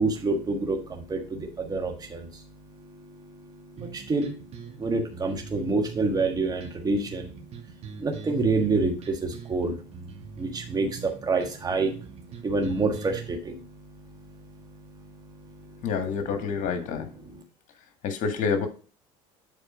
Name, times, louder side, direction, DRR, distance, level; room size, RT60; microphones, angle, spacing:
voice 1, 0.0-2.4 2.7-7.4 8.0-15.9 17.3-17.4, right 3 dB, 25° right, 1.4 m, -29 dB
sound 1, 3.8-13.4, right 7 dB, 45° right, 2.0 m, -43 dB
voice 2, 15.8-17.1 18.0-18.7, left 5 dB, 55° left, 1.7 m, -27 dB
7.6 x 4.3 x 4.9 m
hypercardioid pair, 80°, 15 cm